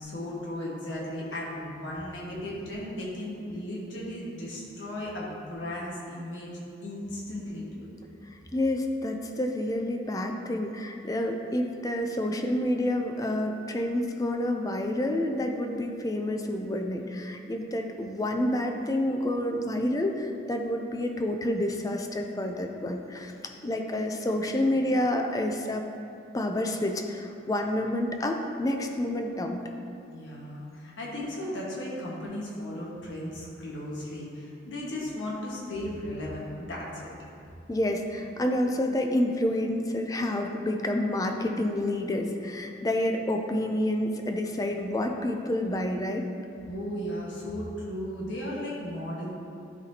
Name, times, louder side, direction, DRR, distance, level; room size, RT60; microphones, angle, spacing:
voice 1, 0.0-6.5 6.8-7.9 30.1-37.1 46.7-49.3, left 1 dB, 85° left, -5 dB, 1.3 m, -36 dB
voice 2, 8.3-23.3 23.6-25.8 26.3-29.6 37.7-46.2, left 1 dB, 20° left, 3 dB, 0.4 m, -29 dB
12.0 x 4.1 x 2.8 m, 2.5 s
head